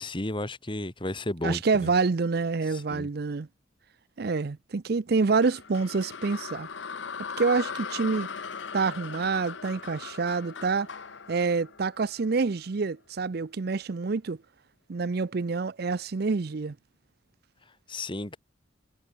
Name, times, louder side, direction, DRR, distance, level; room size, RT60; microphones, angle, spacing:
voice 1, 0.0-1.9 2.7-3.1 17.9-18.4, left 1 dB, 25° left, 2.1 m, -33 dB
voice 2, 1.4-3.5 4.2-6.7 7.4-8.3 8.7-10.9 11.3-14.4 14.9-16.8, right 4 dB, 55° right, 0.5 m, -27 dB
sound 1, 5.4-12.6, left 6 dB, 85° left, 1.0 m, -39 dB
head